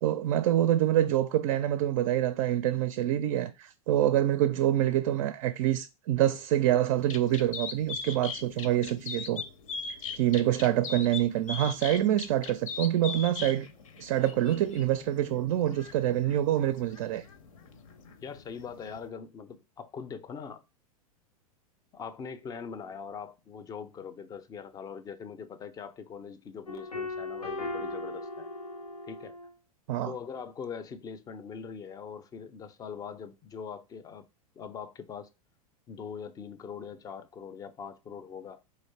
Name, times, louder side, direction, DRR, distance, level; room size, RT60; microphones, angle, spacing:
voice 1, 0.0-9.4 9.9-13.7 14.0-17.2 29.9-30.1, right 12 dB, 45° right, 0.4 m, -26 dB
sound 1, 6.9-19.1, left 5 dB, 60° left, 0.7 m, -41 dB
voice 2, 18.2-20.6 21.9-28.5 29.0-29.4 30.0-34.3 34.6-35.3 35.9-38.6, left 6 dB, 20° left, 0.5 m, -42 dB
sound 2, 26.7-29.5, left 2 dB, 85° left, 0.8 m, -37 dB
3.9 x 3.1 x 4.2 m
figure-of-eight pair, 95°, 19 cm